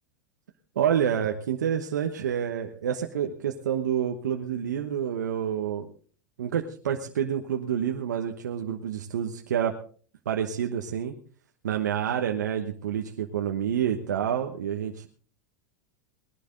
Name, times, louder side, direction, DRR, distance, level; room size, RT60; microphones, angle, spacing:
voice 1, 0.7-5.9 6.4-9.7 10.2-11.2 11.6-15.1, right 9 dB, 85° right, 3 dB, 1.2 m, -28 dB
20.0 x 11.5 x 3.8 m, 0.42 s
hypercardioid pair, 105°, 9 cm